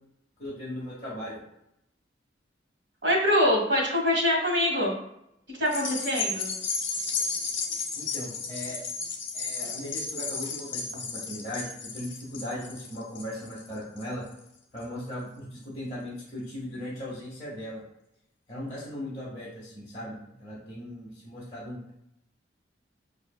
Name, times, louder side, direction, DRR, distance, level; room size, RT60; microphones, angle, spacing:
voice 1, 0.4-1.4 8.0-8.8 9.3-14.2 14.7-17.8 18.5-21.9, left 1 dB, 35° left, -6 dB, 0.8 m, -38 dB
voice 2, 3.0-4.9 5.5-6.5, left 1 dB, 75° right, -1 dB, 1.4 m, -24 dB
sound 1, 5.7-14.3 14.8-14.9, left 4 dB, 70° left, 0.7 m, -33 dB
5.2 x 2.7 x 2.2 m, 0.79 s
head